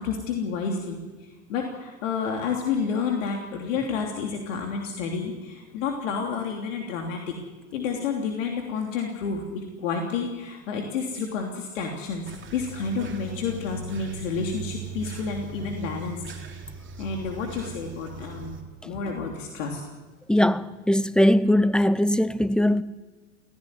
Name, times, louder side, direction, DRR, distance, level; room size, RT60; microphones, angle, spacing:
voice 1, 0.0-7.3 7.7-16.2 17.0-19.8, left 5 dB, 75° left, 3.2 m, -30 dB
sound 1, 12.2-18.6, right 4 dB, 30° right, 3.2 m, -39 dB
voice 2, 20.3-22.8, left 1 dB, ahead, 0.7 m, -20 dB
17.0 x 16.5 x 9.7 m
hypercardioid pair, 100°, 39 cm